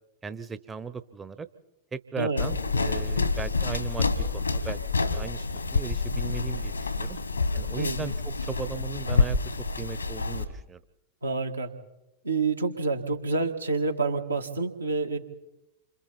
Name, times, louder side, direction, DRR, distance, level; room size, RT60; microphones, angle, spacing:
voice 1, 0.2-1.5 1.9-7.2 7.5-10.8, right 5 dB, 15° right, 12 dB, 0.8 m, -38 dB
sound 1, 2.4-10.4, left 4 dB, 80° left, 1.6 m, -28 dB
voice 2, 11.2-11.7 12.2-15.2, right 3 dB, 80° right, 4 dB, 1.9 m, -28 dB
28.5 x 26.0 x 4.2 m, 0.89 s
figure-of-eight pair, 90°, 0 cm